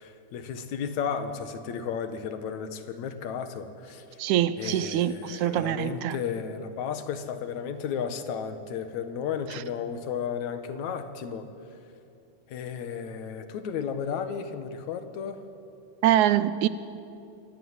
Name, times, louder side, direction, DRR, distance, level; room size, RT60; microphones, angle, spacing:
voice 1, 0.0-4.2 4.6-11.5 12.5-15.4, left 7 dB, 75° left, 2.7 m, -33 dB
voice 2, 4.2-6.2 9.5-9.6 16.0-16.7, right 12 dB, 80° right, 2.1 m, -24 dB
27.0 x 16.0 x 9.6 m
omnidirectional pair, 3.4 m